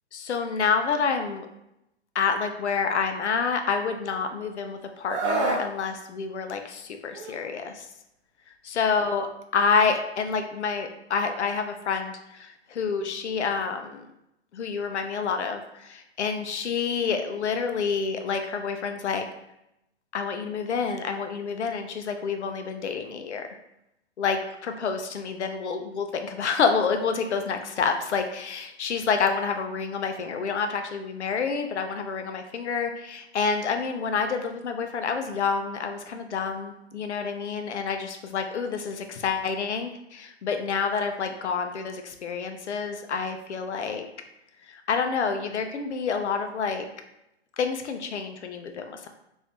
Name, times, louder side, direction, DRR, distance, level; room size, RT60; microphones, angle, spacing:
voice 1, 0.1-1.5 2.1-7.9 8.6-9.3 9.5-14.0 14.5-19.2 20.1-23.5 24.2-44.1 44.9-46.8 47.6-49.1, left 5 dB, 85° left, 6 dB, 0.6 m, -28 dB
Screaming, 5.1-5.7 7.1-7.4, right 2 dB, 30° right, 0.6 m, -26 dB
2.9 x 2.6 x 3.4 m, 0.85 s
hypercardioid pair, 125°, 33 cm